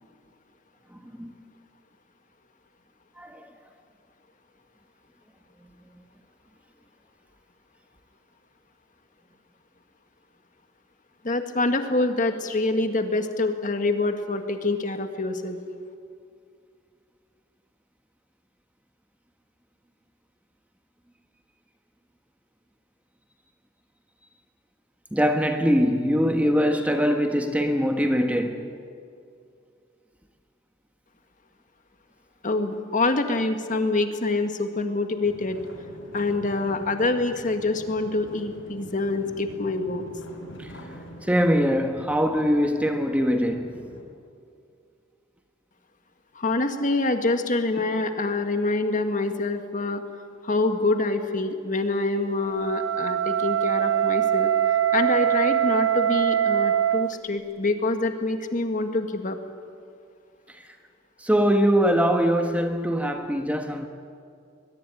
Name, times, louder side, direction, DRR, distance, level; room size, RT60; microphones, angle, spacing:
voice 1, 0.9-1.3 3.2-3.5 25.1-28.7 40.6-40.7 41.2-43.9 60.5-60.8 61.2-63.9, equal, 5° right, 1.3 m, -23 dB
voice 2, 11.2-15.6 32.4-35.6 36.1-40.0 46.3-50.0 50.4-59.4, left 2 dB, 40° left, 1.8 m, -26 dB
sound 1, 35.2-44.0, equal, 70° left, 6.5 m, -44 dB
Wind instrument woodwind instrument, 52.5-57.1, right 10 dB, 85° right, 0.7 m, -23 dB
22.5 x 21.5 x 10.0 m
head